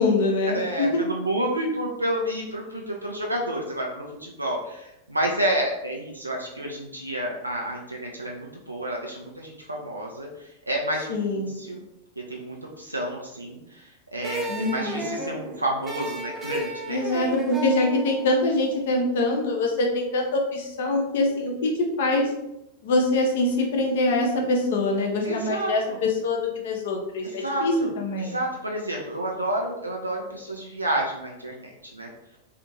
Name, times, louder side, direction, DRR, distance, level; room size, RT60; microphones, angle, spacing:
voice 1, 0.0-1.0 11.1-11.5 14.5-15.1 16.9-22.3 22.8-28.4, left 2 dB, 55° left, 1 dB, 0.6 m, -24 dB
voice 2, 0.5-10.3 10.7-11.8 12.2-17.3 25.2-26.0 27.4-27.9 28.2-32.1, right 1 dB, 85° right, -1 dB, 0.4 m, -30 dB
sound 1, 14.2-19.3, right 2 dB, 15° right, 0.5 m, -34 dB
2.5 x 2.4 x 3.0 m, 0.88 s
figure-of-eight pair, 90°, 0 cm